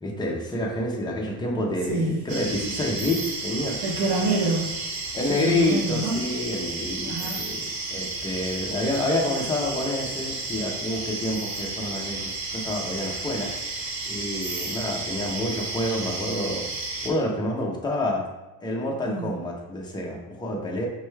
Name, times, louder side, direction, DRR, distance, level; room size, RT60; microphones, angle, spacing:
voice 1, 0.0-3.8 5.1-13.5 14.1-16.7 17.0-18.2 18.6-20.9, left 1 dB, 10° left, -1 dB, 0.4 m, -28 dB
voice 2, 1.8-2.3 3.8-4.8 5.3-6.2 7.0-7.5 19.0-19.4, right 2 dB, 50° right, -2 dB, 0.9 m, -27 dB
sound 1, 2.3-17.1, right 3 dB, 75° right, 0.9 m, -32 dB
5.4 x 2.2 x 3.1 m, 1.1 s
cardioid pair, 155°, 44 cm